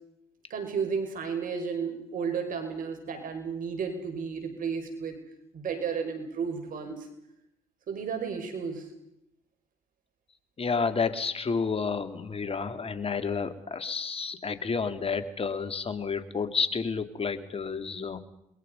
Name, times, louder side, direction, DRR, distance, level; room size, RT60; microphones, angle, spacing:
voice 1, 0.5-5.2 5.5-7.1 7.9-8.9, right 6 dB, 65° right, 6 dB, 5.8 m, -33 dB
voice 2, 10.6-18.2, left 5 dB, 40° left, 10 dB, 2.7 m, -30 dB
28.0 x 22.5 x 5.4 m, 0.79 s
supercardioid pair, 65°, 15 cm